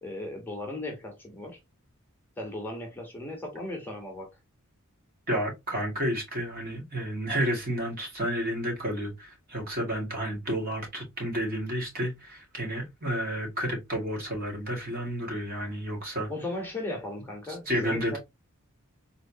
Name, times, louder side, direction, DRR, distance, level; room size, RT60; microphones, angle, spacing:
voice 1, 0.0-1.6 2.4-4.3 16.3-18.2, left 1 dB, 10° left, 1.1 m, -36 dB
voice 2, 5.3-16.3 17.7-18.2, equal, 45° right, 2.0 m, -31 dB
3.9 x 3.0 x 2.7 m
head